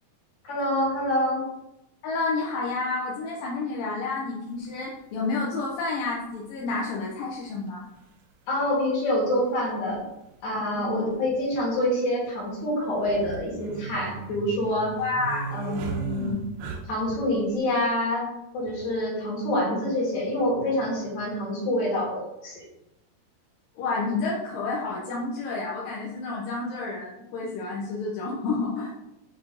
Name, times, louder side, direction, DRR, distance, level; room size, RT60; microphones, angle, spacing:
voice 1, 0.4-1.4 8.5-10.0 10.4-14.9 15.5-16.4 16.9-18.3 18.5-22.6, left 1 dB, 50° left, -4 dB, 3.2 m, -26 dB
voice 2, 2.0-7.9 10.7-11.1 15.0-15.6 23.8-29.0, left 3 dB, 70° left, -4 dB, 2.2 m, -30 dB
sound 1, 4.6-4.7 6.1-6.2 7.7-7.8 8.0-8.1 9.9-10.0 10.3-10.4 11.1-11.6 13.0-17.2, right 4 dB, 75° right, 2.5 m, -35 dB
6.9 x 5.1 x 3.8 m, 0.91 s
omnidirectional pair, 4.9 m